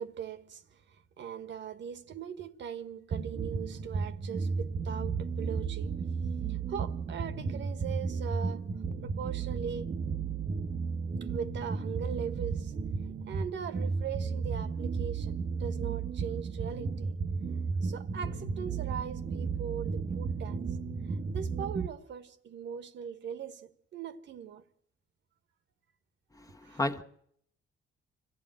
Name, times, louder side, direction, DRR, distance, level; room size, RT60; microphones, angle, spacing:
voice 1, 0.0-5.9 6.5-8.6 9.0-10.0 11.3-12.7 13.1-17.2 17.8-20.6 21.1-24.6 26.6-26.8, right 7 dB, 65° right, 1.5 m, -40 dB
sound 1, 3.1-21.9, right 5 dB, 45° right, 1.1 m, -34 dB
voice 2, 26.4-27.0, left 2 dB, 15° left, 1.4 m, -33 dB
25.5 x 16.0 x 7.8 m
cardioid pair, 90°, 20 cm